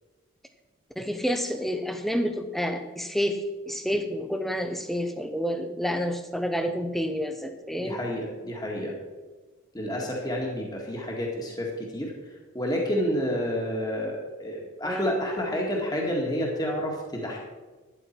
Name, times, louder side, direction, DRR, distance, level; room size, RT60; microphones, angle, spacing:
voice 1, 1.0-3.4 3.7-8.0 14.8-15.2, equal, ahead, 7 dB, 0.9 m, -29 dB
voice 2, 7.8-8.9 9.7-12.1 12.5-17.4, equal, 20° left, -1 dB, 1.8 m, -29 dB
12.0 x 10.0 x 4.5 m, 1.3 s
head